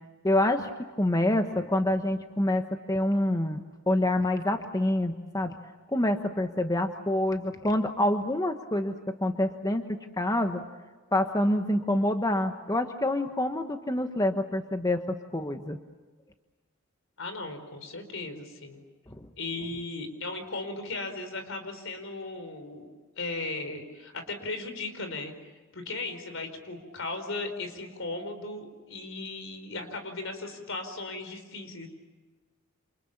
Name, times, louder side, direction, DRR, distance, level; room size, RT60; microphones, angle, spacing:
voice 1, 0.2-5.5 5.9-10.6 11.1-15.8 19.1-19.3, left 1 dB, 20° left, 6 dB, 1.2 m, -27 dB
voice 2, 17.2-18.8 19.4-22.9 23.2-25.3 25.7-31.9, left 3 dB, 65° left, 8 dB, 4.8 m, -36 dB
28.5 x 28.0 x 7.3 m, 1.3 s
head